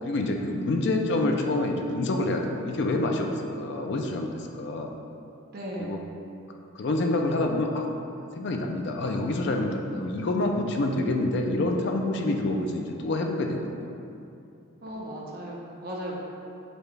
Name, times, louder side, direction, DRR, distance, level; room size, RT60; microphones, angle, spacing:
voice 1, 0.0-4.9 5.8-6.0 6.7-7.9 8.3-14.1, left 2 dB, 55° left, 3 dB, 0.4 m, -27 dB
voice 2, 5.5-6.0 14.8-16.2, equal, 45° right, -4 dB, 0.6 m, -36 dB
6.7 x 2.2 x 3.2 m, 2.6 s
head